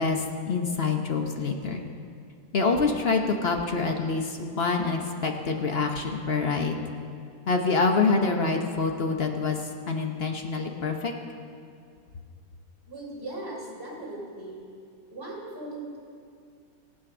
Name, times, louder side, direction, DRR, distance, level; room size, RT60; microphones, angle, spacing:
voice 1, 0.0-1.8 2.5-6.8 7.5-9.6 9.9-11.1, left 4 dB, 55° left, 3 dB, 0.7 m, -26 dB
voice 2, 12.9-14.6 15.1-16.0, right 2 dB, 30° right, -3 dB, 3.6 m, -38 dB
17.0 x 8.6 x 6.1 m, 2.3 s
omnidirectional pair, 2.2 m